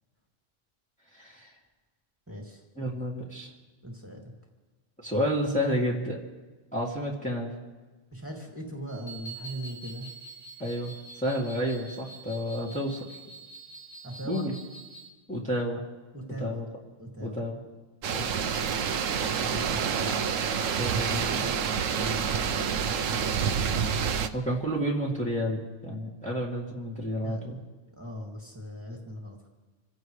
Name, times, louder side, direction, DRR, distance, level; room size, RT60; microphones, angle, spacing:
voice 1, 1.1-1.5 2.8-3.5 5.0-6.2 6.7-7.5 10.6-13.1 14.2-14.5 15.3-15.8 16.4-16.6 17.2-17.6 18.1-18.3 20.7-21.5 24.1-27.6, equal, 5° left, -4 dB, 2.3 m, -30 dB
voice 2, 2.3-2.6 3.8-4.3 8.1-10.1 14.0-14.5 16.1-16.6 17.0-17.4 19.3-20.2 22.0-22.5 23.0-23.2 27.2-27.4 28.0-29.5, equal, 10° right, -1 dB, 2.4 m, -39 dB
sound 1, 8.9-15.1, right 3 dB, 75° left, 4.4 m, -46 dB
sound 2, 18.0-24.3, right 7 dB, 90° right, 1.1 m, -28 dB
27.0 x 16.0 x 3.2 m, 1.3 s
omnidirectional pair, 1.3 m